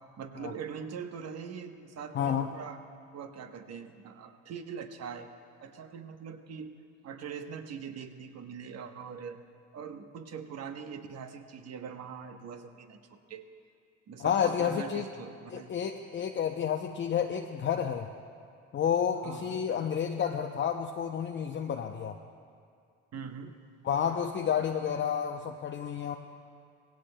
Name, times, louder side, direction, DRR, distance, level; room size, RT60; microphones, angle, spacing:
voice 1, 0.2-2.8 3.1-6.7 7.0-9.4 9.7-13.4 14.1-15.7 19.2-19.6 23.1-23.6, right 6 dB, 45° right, 7 dB, 1.1 m, -42 dB
voice 2, 2.1-2.5 14.2-15.1 15.5-18.1 18.7-22.2 23.8-26.2, left 8 dB, 35° left, 3 dB, 0.6 m, -30 dB
17.5 x 16.5 x 2.2 m, 2.3 s
supercardioid pair, 75°, 35 cm